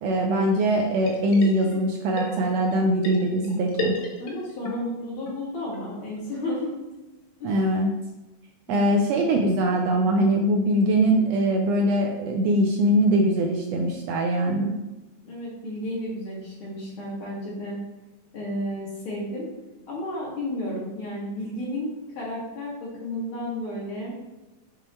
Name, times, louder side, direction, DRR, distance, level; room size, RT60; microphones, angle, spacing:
voice 1, 0.0-3.9 7.4-7.9 8.7-14.8, right 1 dB, 75° right, 2 dB, 1.6 m, -22 dB
sound 1, 1.0-1.9 2.2-4.7 5.0-5.1 5.3-5.4 5.7-5.8 6.2-6.3 6.5-6.6 6.9-7.0, left 1 dB, 90° left, 2.6 m, -33 dB
voice 2, 4.2-6.7 7.4-7.6 8.7-8.9 15.2-17.8 18.3-19.5 19.9-24.1, left 1 dB, 50° left, -5 dB, 2.2 m, -32 dB
7.0 x 3.7 x 4.3 m, 1.0 s
omnidirectional pair, 3.3 m